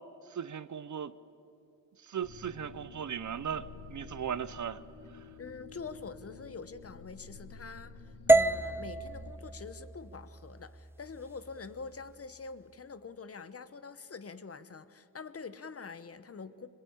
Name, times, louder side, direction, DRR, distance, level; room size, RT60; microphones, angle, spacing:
voice 1, 0.3-1.1 2.1-4.8, right 8 dB, 45° right, 16 dB, 0.8 m, -37 dB
sound 1, 2.2-9.3, left 4 dB, 80° left, 2.5 m, -50 dB
voice 2, 5.4-16.7, left 5 dB, 35° left, 13 dB, 1.2 m, -45 dB
sound 2, 8.3-12.4, right 2 dB, 5° right, 0.6 m, -30 dB
23.0 x 21.0 x 8.6 m, 2.8 s
cardioid pair, 75°, 40 cm